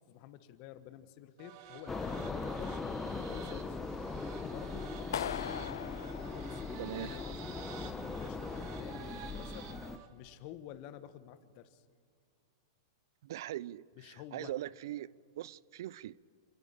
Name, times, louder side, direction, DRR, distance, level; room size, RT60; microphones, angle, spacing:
voice 1, 0.1-2.8 3.3-3.8 4.0-5.7 6.3-9.7 10.1-11.8 14.0-14.5, left 12 dB, 45° left, 1.1 m, -50 dB
sound 1, 1.4-10.1, right 8 dB, 50° right, 2.0 m, -50 dB
sound 2, 1.9-10.0, left 4 dB, 10° left, 0.8 m, -40 dB
Clapping, 5.1-7.2, left 10 dB, 85° left, 0.6 m, -40 dB
voice 2, 6.8-7.1 13.2-15.1 15.4-16.1, right 13 dB, 70° right, 0.4 m, -41 dB
28.5 x 10.5 x 8.9 m
hypercardioid pair, 140°, 2 cm